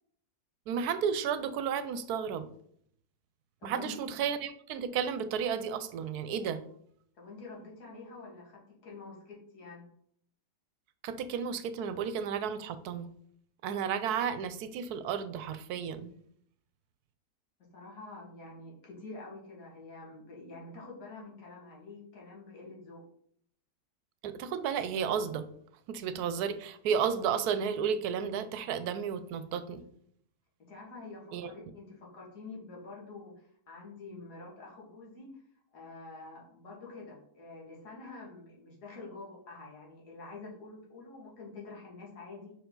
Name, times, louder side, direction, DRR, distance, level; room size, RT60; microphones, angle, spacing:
voice 1, 0.7-2.5 3.6-6.6 11.0-13.1 13.6-16.1 24.2-25.5 25.9-29.8 31.3-31.5, right 7 dB, 80° right, 12 dB, 1.1 m, -32 dB
voice 2, 3.6-4.1 7.2-9.8 17.7-23.0 30.6-35.3 35.7-42.5, left 3 dB, 85° left, -3 dB, 2.3 m, -47 dB
5.2 x 4.7 x 3.8 m, 0.66 s
omnidirectional pair, 1.7 m